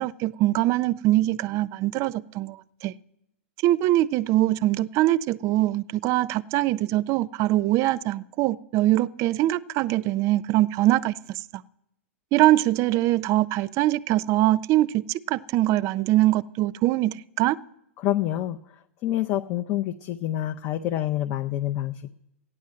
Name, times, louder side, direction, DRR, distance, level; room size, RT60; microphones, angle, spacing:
voice 1, 0.0-2.6 2.8-2.9 3.6-11.4 12.3-17.6, right 15 dB, 40° right, 19 dB, 0.5 m, -23 dB
voice 2, 18.0-18.6 19.0-22.1, left 13 dB, 40° left, 6 dB, 0.6 m, -27 dB
14.0 x 9.8 x 7.6 m, 0.83 s
hypercardioid pair, 110°, 8 cm